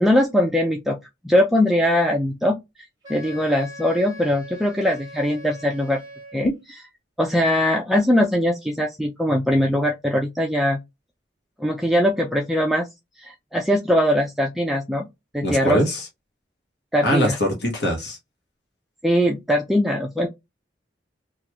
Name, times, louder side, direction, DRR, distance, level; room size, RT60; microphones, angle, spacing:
voice 1, 0.0-1.0 1.2-2.6 3.1-6.0 6.3-6.5 7.2-10.8 11.6-12.9 13.2-15.1 15.3-15.8 16.9-17.4 19.0-20.3, equal, ahead, 0.3 m, -21 dB
Wind instrument woodwind instrument, 3.0-6.6, equal, 20° right, 1.1 m, -41 dB
voice 2, 15.4-16.1 17.0-18.2, equal, 60° left, 1.1 m, -22 dB
2.9 x 2.3 x 3.3 m
head